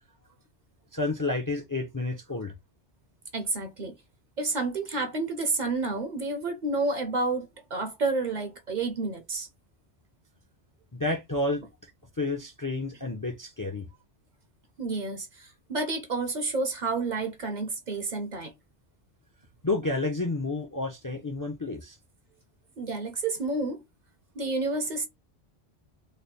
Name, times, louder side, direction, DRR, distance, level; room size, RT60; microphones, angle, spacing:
voice 1, 0.9-2.5 10.9-11.6 12.2-13.9 19.6-22.0, left 2 dB, 25° left, 0.5 m, -30 dB
voice 2, 3.3-4.0 4.4-9.5 14.8-18.5 22.8-23.8 24.3-25.1, right 3 dB, 50° right, 0.8 m, -30 dB
3.3 x 2.1 x 4.1 m
omnidirectional pair, 1.1 m